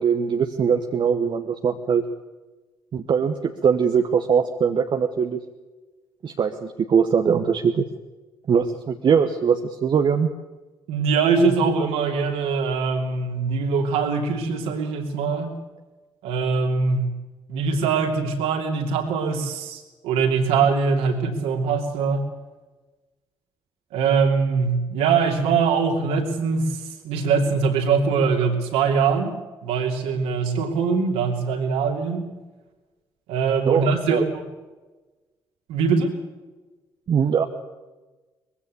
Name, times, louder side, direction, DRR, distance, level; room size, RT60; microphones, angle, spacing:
voice 1, 0.0-2.0 2.9-5.4 6.2-7.9 8.5-10.3 33.6-34.3 37.1-37.5, right 6 dB, 45° right, 5 dB, 1.2 m, -21 dB
voice 2, 10.9-15.5 16.2-17.1 17.5-22.2 23.9-26.8 27.0-29.3 29.6-32.3 33.3-34.3 35.7-36.2, right 5 dB, 65° right, 3 dB, 2.9 m, -22 dB
21.5 x 16.0 x 8.3 m, 1.2 s
figure-of-eight pair, 40°, 11 cm